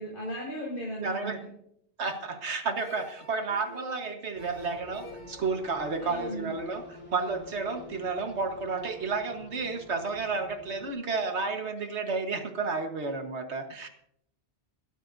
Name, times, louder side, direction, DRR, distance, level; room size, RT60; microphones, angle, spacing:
voice 1, 0.0-1.5 6.0-6.5, right 1 dB, 50° left, -5 dB, 5.0 m, -36 dB
voice 2, 1.0-1.4 2.0-13.9, right 4 dB, 85° right, 6 dB, 1.7 m, -32 dB
sound 1, 2.8-7.8, right 2 dB, 45° right, 7.3 m, -50 dB
sound 2, 4.3-10.9, left 3 dB, 10° left, 3.7 m, -47 dB
21.5 x 12.0 x 2.7 m, 0.72 s
omnidirectional pair, 1.1 m